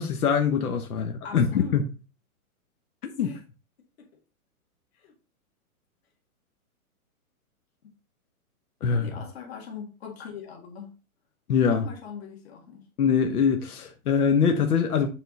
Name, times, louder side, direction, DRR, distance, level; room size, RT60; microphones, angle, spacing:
voice 1, 0.0-1.8 3.0-3.3 8.8-9.1 11.5-11.9 13.0-15.1, left 6 dB, 85° left, 1.2 m, -23 dB
voice 2, 1.2-1.7 3.2-3.4 4.0-4.1 5.0-5.1 7.8-7.9 8.9-11.0 11.7-12.9, left 6 dB, 45° left, 1.9 m, -41 dB
7.2 x 3.8 x 4.1 m
hypercardioid pair, 175°, 44 cm